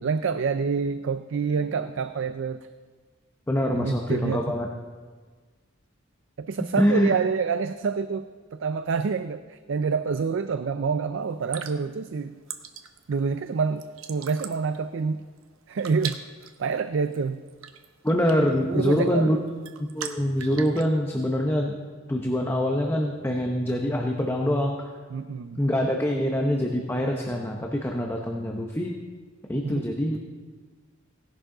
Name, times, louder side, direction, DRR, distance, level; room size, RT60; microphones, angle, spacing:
voice 1, 0.0-2.7 3.7-4.5 6.4-12.4 13.1-15.2 15.7-16.2 16.6-17.4 18.7-19.3 25.1-25.6 29.6-30.2, right 5 dB, 65° right, 11 dB, 0.4 m, -27 dB
voice 2, 3.5-4.7 6.8-7.1 18.0-19.4 19.8-21.7 22.1-24.8 25.6-28.9 29.5-30.2, equal, 10° left, 1 dB, 0.8 m, -24 dB
sound 1, 11.3-20.9, right 8 dB, 90° right, 0.9 m, -42 dB
17.0 x 11.5 x 3.8 m, 1.5 s
head